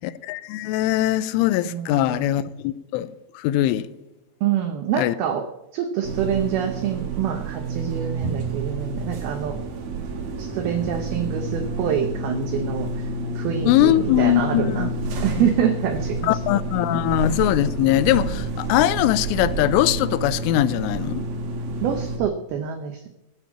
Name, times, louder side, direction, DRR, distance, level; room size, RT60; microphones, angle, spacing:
voice 1, 0.0-3.1 3.4-3.9 5.0-5.2 13.7-14.9 15.4-15.5 16.2-21.3, left 14 dB, 85° left, 3.1 m, -21 dB
voice 2, 1.6-2.3 4.4-5.4 5.7-9.6 10.4-12.9 13.4-14.9 15.2-16.4 21.8-23.0, right 8 dB, 85° right, 2.1 m, -26 dB
sound 1, 6.0-22.2, right 2 dB, 55° right, 3.0 m, -29 dB
14.5 x 6.9 x 7.2 m
omnidirectional pair, 5.7 m